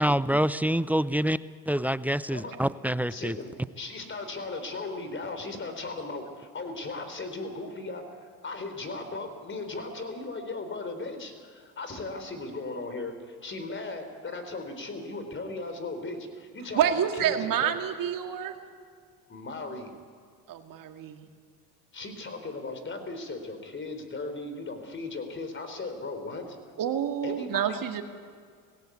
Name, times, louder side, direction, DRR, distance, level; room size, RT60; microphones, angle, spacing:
voice 1, 0.0-1.4 1.7-3.3, equal, 5° right, 16 dB, 0.4 m, -26 dB
voice 2, 3.1-17.8 18.2-18.4 19.3-19.9 21.9-26.4 27.2-27.8, left 3 dB, 30° left, 8 dB, 3.9 m, -37 dB
voice 3, 16.7-18.5 20.5-21.2 26.8-28.0, right 9 dB, 55° right, 6 dB, 2.2 m, -28 dB
19.0 x 17.0 x 8.5 m, 2.1 s
supercardioid pair, 95°, 39 cm